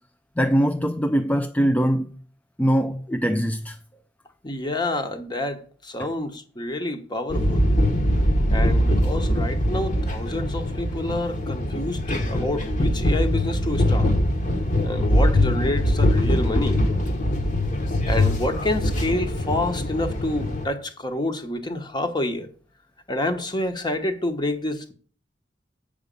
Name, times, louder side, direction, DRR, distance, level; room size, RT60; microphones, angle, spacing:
voice 1, 0.4-2.1 2.6-3.8 6.0-6.1, equal, 10° left, 0.4 m, -22 dB
voice 2, 4.4-7.7 8.5-14.1 14.8-16.8 18.1-22.5 23.1-24.9, left 1 dB, 25° left, 1.1 m, -28 dB
sound 1, 7.3-20.7, left 1 dB, 45° left, 1.3 m, -22 dB
8.2 x 5.1 x 6.8 m
head